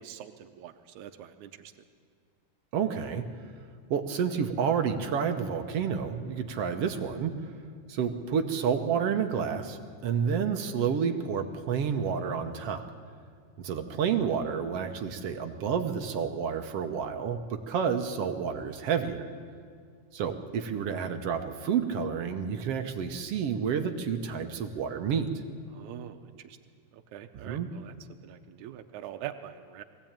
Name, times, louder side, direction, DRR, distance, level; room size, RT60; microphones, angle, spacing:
voice 1, 0.0-1.7 25.7-26.6 27.1-27.9 28.2-29.8, right 11 dB, 90° right, 8 dB, 2.2 m, -43 dB
voice 2, 2.7-3.2 3.9-7.3 7.9-12.8 13.6-17.4 17.7-19.3 20.1-25.3 27.3-27.7, right 7 dB, 65° right, 7 dB, 1.8 m, -30 dB
21.0 x 16.5 x 8.8 m, 2.1 s
omnidirectional pair, 3.3 m